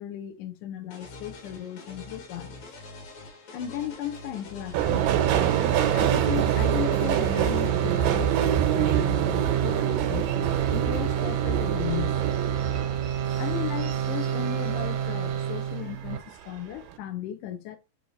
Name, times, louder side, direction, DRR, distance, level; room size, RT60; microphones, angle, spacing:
voice 1, 0.0-2.6 3.5-5.1 5.9-12.2 13.4-17.8, left 12 dB, 75° left, 2.2 m, -35 dB
sound 1, 0.9-7.8, left 3 dB, 60° left, 2.8 m, -44 dB
Subway metro underground, 4.7-15.5 15.8-16.5 16.8-16.9, right 10 dB, 90° right, 2.5 m, -27 dB
sound 2, 4.8-16.2, right 9 dB, 75° right, 1.7 m, -29 dB
7.7 x 3.0 x 4.1 m
omnidirectional pair, 3.9 m